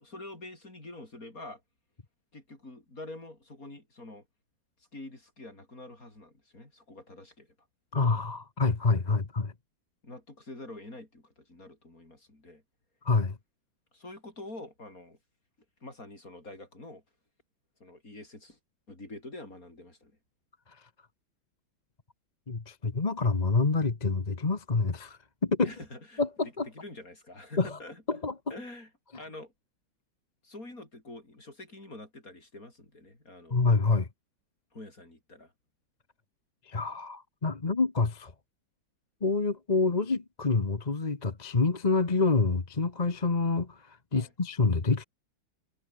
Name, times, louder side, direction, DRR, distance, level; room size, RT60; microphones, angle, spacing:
voice 1, 0.0-1.6 2.3-4.3 4.9-7.5 9.1-9.2 10.0-12.6 13.9-15.2 15.8-17.0 17.8-18.6 18.9-20.1 25.6-28.2 28.5-29.5 30.4-33.7 34.7-35.5 44.1-44.3, left 2 dB, 40° left, 7.2 m, -46 dB
voice 2, 7.9-9.5 13.0-13.4 22.5-25.7 26.2-26.7 27.6-27.8 28.1-28.3 33.5-34.1 36.7-38.3 39.2-45.0, left 4 dB, 25° left, 1.3 m, -27 dB
omnidirectional pair, 2.2 m